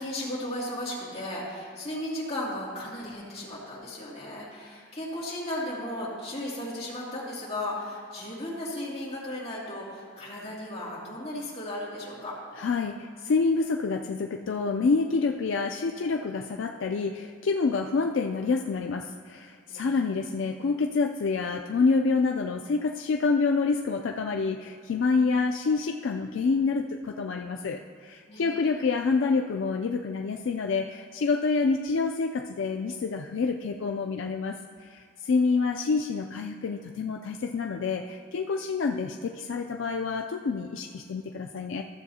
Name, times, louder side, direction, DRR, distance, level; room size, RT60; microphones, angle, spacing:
voice 1, 0.0-12.3 19.7-20.3 28.3-28.8, left 1 dB, 30° left, -7 dB, 2.5 m, -35 dB
voice 2, 12.6-41.8, left 4 dB, 70° left, 3 dB, 0.4 m, -27 dB
14.5 x 7.3 x 2.8 m, 2.2 s
head